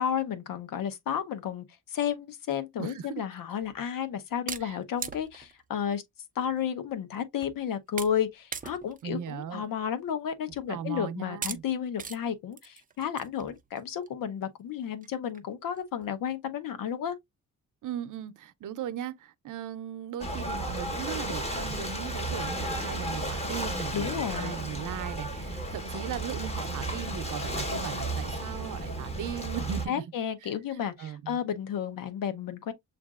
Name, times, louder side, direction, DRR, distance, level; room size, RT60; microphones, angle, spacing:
voice 1, 0.0-6.0 6.3-17.2 23.9-24.6 29.9-32.7, left 8 dB, 80° left, 1.0 m, -32 dB
voice 2, 2.8-3.2 4.6-4.8 9.0-9.7 10.7-11.6 17.8-30.0 31.0-31.4, right 9 dB, 65° right, 0.7 m, -38 dB
sound 1, 3.6-3.8 4.5-5.6 6.4-6.5 6.9-7.0 7.4-7.6 8.0-8.2 8.5-9.0 9.5-9.6 10.5-10.7 11.4-11.6 12.0-12.2 12.5-14.1 14.6-14.7 15.0-15.1 15.3-15.4 15.8-16.1, right 6 dB, 25° right, 0.5 m, -39 dB
Ocean / Boat Water vehicle, 20.2-29.8, right 1 dB, 20° left, 1.4 m, -33 dB
7.2 x 2.6 x 2.4 m
cardioid pair, 110°, 33 cm